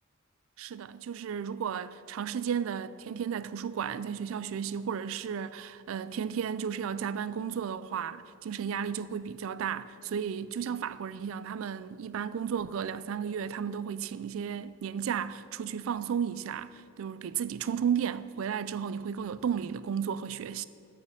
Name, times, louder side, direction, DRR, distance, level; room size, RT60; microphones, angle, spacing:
voice 1, 0.6-20.6, right 7 dB, 70° right, 0.3 m, -33 dB
7.2 x 6.8 x 6.5 m
head